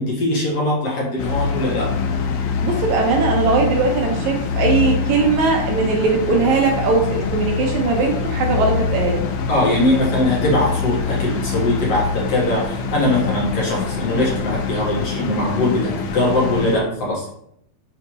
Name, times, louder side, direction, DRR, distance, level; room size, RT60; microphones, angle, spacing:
voice 1, 0.0-1.9 9.5-17.3, left 1 dB, 55° left, -4 dB, 2.2 m, -21 dB
sound 1, 1.2-16.8, left 5 dB, 75° left, 2.0 m, -24 dB
voice 2, 2.6-9.2, right 4 dB, 70° right, 0 dB, 2.0 m, -19 dB
5.8 x 5.6 x 3.1 m, 0.71 s
omnidirectional pair, 3.8 m